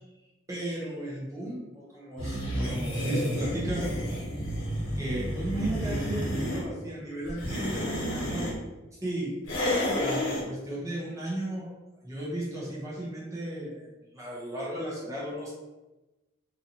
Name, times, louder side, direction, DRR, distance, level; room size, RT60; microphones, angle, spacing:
voice 1, 0.5-3.9 5.0-8.5 9.0-9.3 9.8-11.7 12.0-15.5, right 1 dB, 15° right, -6 dB, 1.0 m, -35 dB
sound 1, 2.2-6.6 7.3-8.5 9.4-10.4, equal, 70° left, 1.1 m, -30 dB
4.0 x 2.7 x 2.9 m, 1.1 s
head